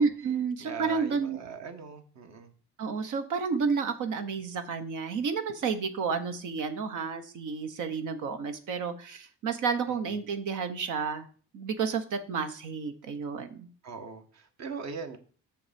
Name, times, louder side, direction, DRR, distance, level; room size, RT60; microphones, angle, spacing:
voice 1, 0.0-1.4 2.8-11.3 11.5-13.7, right 5 dB, 85° right, 7 dB, 1.2 m, -31 dB
voice 2, 0.6-2.5 10.0-10.1 13.8-15.2, right 6 dB, 65° right, 6 dB, 1.5 m, -40 dB
7.0 x 5.9 x 5.2 m, 0.41 s
cardioid pair, 90°, 30 cm